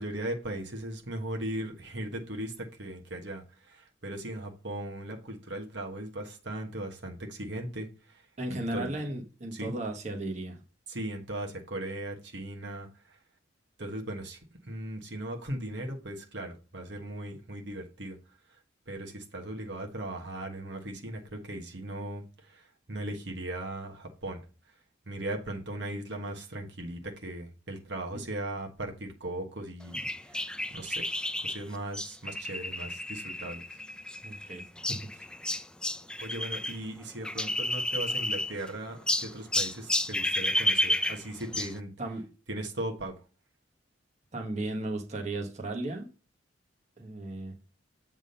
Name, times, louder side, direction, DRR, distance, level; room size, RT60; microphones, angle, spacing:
voice 1, 0.0-7.9 8.5-8.9 9.5-9.7 10.9-12.9 13.8-14.4 14.6-18.2 18.9-24.4 25.1-30.0 30.3-30.5 30.7-31.1 31.4-33.6 36.2-41.9 42.5-43.1, right 1 dB, 60° right, 2 dB, 1.3 m, -38 dB
voice 2, 8.4-10.6 28.1-28.2 34.2-34.6 34.9-35.3 42.0-42.2 44.3-46.1 47.0-47.5, right 2 dB, 35° right, 1 dB, 1.4 m, -35 dB
sound 1, 29.9-36.8 37.0-38.7 39.1-41.8, left 1 dB, 5° left, 0.4 m, -31 dB
8.3 x 3.6 x 5.3 m, 0.33 s
head